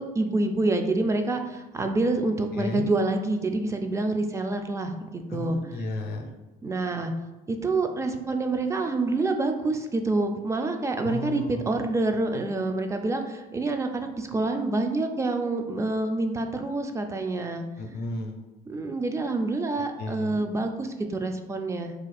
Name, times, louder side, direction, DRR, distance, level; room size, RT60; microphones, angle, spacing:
voice 1, 0.0-5.8 6.6-7.1 7.5-17.6 18.7-21.9, right 2 dB, 15° right, 6 dB, 0.3 m, -27 dB
voice 2, 2.5-2.9 5.3-6.3 11.0-11.6 17.8-18.4 20.0-20.4, left 2 dB, 70° left, 4 dB, 0.5 m, -33 dB
2.4 x 2.4 x 4.1 m, 1.1 s
cardioid pair, 110°, 17 cm